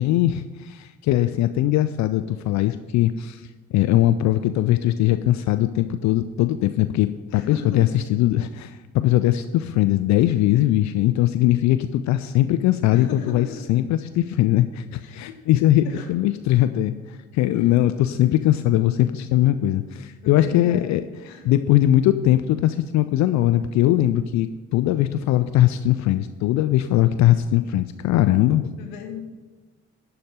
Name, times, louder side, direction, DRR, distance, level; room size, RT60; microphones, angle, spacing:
voice 1, 0.0-21.0 21.4-28.7, left 13 dB, 50° left, 11 dB, 0.4 m, -20 dB
voice 2, 7.3-7.8 12.9-13.6 15.0-15.4 15.8-16.1 20.2-21.6 28.8-29.2, left 5 dB, 70° left, 4 dB, 1.2 m, -38 dB
11.5 x 4.3 x 6.6 m, 1.3 s
figure-of-eight pair, 40°, 38 cm